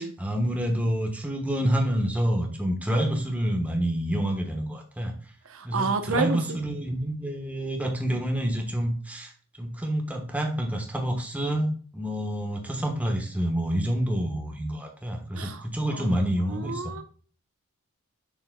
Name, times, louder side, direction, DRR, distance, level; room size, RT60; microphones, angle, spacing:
voice 1, 0.0-5.1 5.6-9.3 9.6-16.9, equal, 5° right, 2 dB, 1.1 m, -28 dB
voice 2, 5.5-6.6 15.3-15.7 15.9-16.1 16.5-17.0, right 4 dB, 70° right, 7 dB, 0.7 m, -29 dB
7.1 x 6.6 x 2.2 m, 0.44 s
head